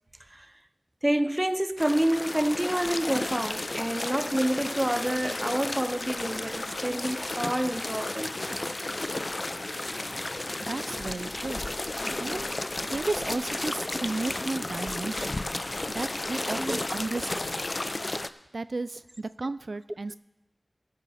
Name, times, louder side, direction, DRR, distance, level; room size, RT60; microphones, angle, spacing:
voice 1, 1.0-8.4 16.5-16.9, right 1 dB, 20° right, 0.5 m, -28 dB
sound 1, 1.8-18.3, left 2 dB, 45° left, 0.5 m, -33 dB
voice 2, 10.6-11.6 12.2-12.5 12.9-15.5 15.9-17.6 18.5-20.2, right 3 dB, 75° right, 0.3 m, -33 dB
18.5 x 8.3 x 4.2 m
wide cardioid pair, 50°, 0 cm